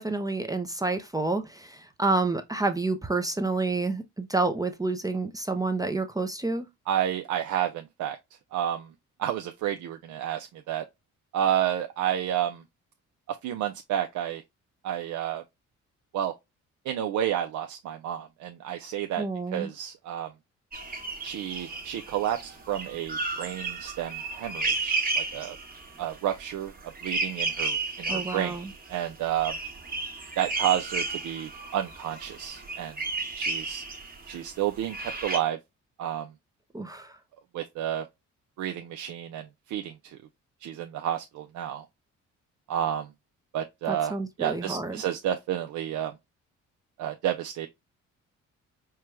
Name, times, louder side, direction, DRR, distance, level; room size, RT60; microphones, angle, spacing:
voice 1, 0.0-6.6 19.2-19.7 28.1-28.7 36.7-37.2 43.9-44.9, right 3 dB, 10° right, 0.5 m, -29 dB
voice 2, 6.9-8.2 8.5-8.9 9.2-10.8 11.3-12.6 13.3-14.4 14.8-15.4 16.1-16.3 16.9-19.2 19.5-20.3 21.2-25.6 26.0-26.7 27.0-28.6 28.9-29.6 30.4-33.0 33.4-33.8 34.3-35.6 36.0-36.3 37.5-38.1 38.6-40.2 40.6-41.8 42.7-43.1 43.5-44.1 44.4-46.2 47.0-47.7, right 11 dB, 75° right, 0.5 m, -30 dB
sound 1, 20.7-34.5 34.9-35.4, right 3 dB, 30° right, 1.2 m, -33 dB
4.5 x 2.3 x 3.1 m
cardioid pair, 90°, 30 cm